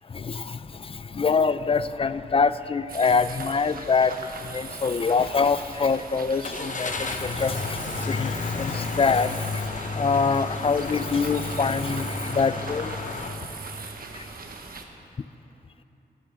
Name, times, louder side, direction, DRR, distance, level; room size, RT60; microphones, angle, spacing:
voice 1, 0.1-13.6 14.1-14.3, left 5 dB, 35° left, 14 dB, 0.4 m, -25 dB
sound 1, 2.9-14.8, right 4 dB, 60° right, 1.2 m, -40 dB
sound 2, 3.3-3.4 3.8-3.9 6.4-13.3, left 3 dB, 50° left, 1.0 m, -31 dB
13.0 x 10.5 x 6.4 m, 2.9 s
wide cardioid pair, 90°, 17 cm